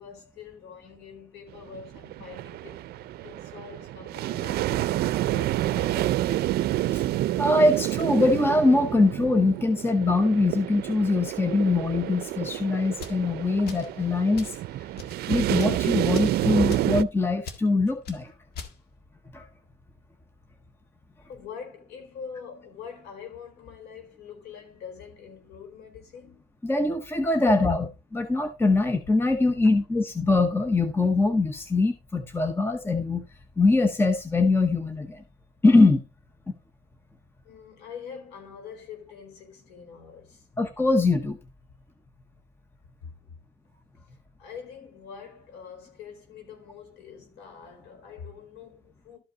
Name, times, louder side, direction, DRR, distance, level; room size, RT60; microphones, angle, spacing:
voice 1, 0.0-2.9 3.2-6.5 7.3-7.5 16.4-16.6 21.3-26.4 37.4-40.5 43.0-43.1 44.1-49.2, left 6 dB, 85° left, 4.6 m, -44 dB
sound 1, 1.5-17.0, right 15 dB, 70° right, 0.5 m, -29 dB
voice 2, 7.4-14.6 15.3-18.3 19.3-19.5 26.6-33.2 33.6-35.2 35.6-36.0 40.6-41.4, left 2 dB, 15° left, 0.9 m, -23 dB
sound 2, 12.9-13.2 13.6-13.9 14.3-14.6 14.9-15.2 15.5-15.8 16.1-16.4 16.7-16.9 17.4-17.6 18.0-18.2 18.5-18.7, left 5 dB, 70° left, 1.8 m, -41 dB
13.0 x 5.2 x 3.9 m
cardioid pair, 110°, 17 cm